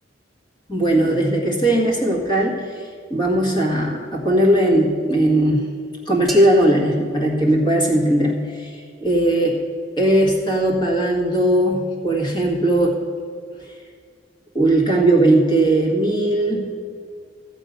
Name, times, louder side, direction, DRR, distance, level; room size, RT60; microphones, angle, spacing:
voice 1, 0.7-2.7 3.1-5.7 6.1-8.7 9.0-9.6 10.0-13.0 14.5-16.7, right 1 dB, 25° left, 0 dB, 1.8 m, -18 dB
sound 1, 6.3-8.3, right 2 dB, ahead, 0.9 m, -36 dB
13.5 x 5.2 x 9.3 m, 2.1 s
head